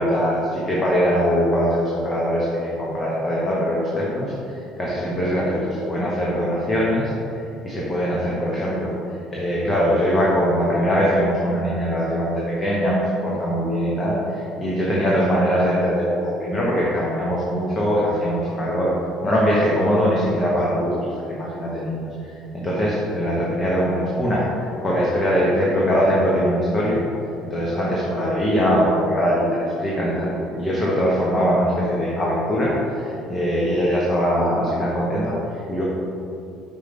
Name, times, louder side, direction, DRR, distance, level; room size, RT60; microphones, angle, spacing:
voice 1, 0.0-18.9 19.2-27.0 27.4-35.8, equal, 20° left, -6 dB, 1.1 m, -22 dB
5.4 x 4.6 x 5.3 m, 2.7 s
cardioid pair, 135°, 0 cm